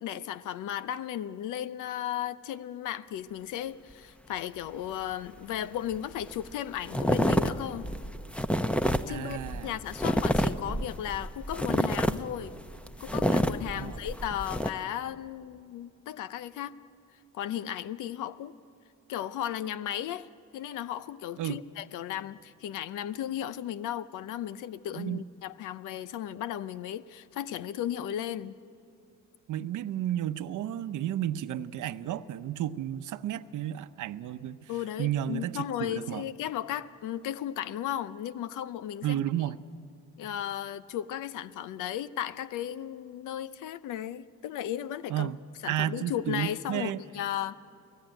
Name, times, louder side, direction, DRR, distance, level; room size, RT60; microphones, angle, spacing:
voice 1, 0.0-7.9 9.1-12.5 13.0-16.8 17.3-18.5 19.1-20.3 20.5-28.5 34.7-39.2 40.2-45.3 45.6-47.5, left 11 dB, 85° left, 0.8 m, -35 dB
sound 1, 5.9-6.0 6.2-6.5 6.9-14.7, equal, 5° left, 0.8 m, -28 dB
voice 2, 9.1-9.7 13.7-14.0 21.4-21.6 24.9-25.2 29.5-34.7 35.0-36.2 39.0-39.6 45.1-45.4 45.7-47.0, right 12 dB, 80° right, 0.8 m, -32 dB
29.0 x 18.0 x 9.1 m
cardioid pair, 90°, 30 cm